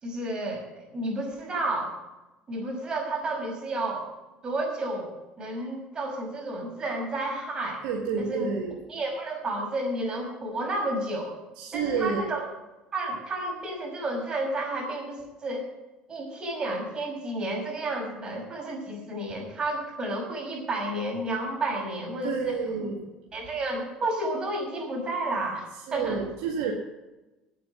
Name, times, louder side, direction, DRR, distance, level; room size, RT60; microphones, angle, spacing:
voice 1, 0.0-1.9 2.5-4.1 4.4-7.8 8.2-8.5 8.9-11.4 11.7-12.5 12.9-15.7 16.1-22.6 23.3-26.2, right 2 dB, 30° right, 0 dB, 5.9 m, -31 dB
voice 2, 7.8-8.8 11.6-12.2 22.2-23.0 25.9-26.7, right 6 dB, 80° right, 0 dB, 1.9 m, -29 dB
9.5 x 8.6 x 9.8 m, 1.0 s
supercardioid pair, 100°, 3 cm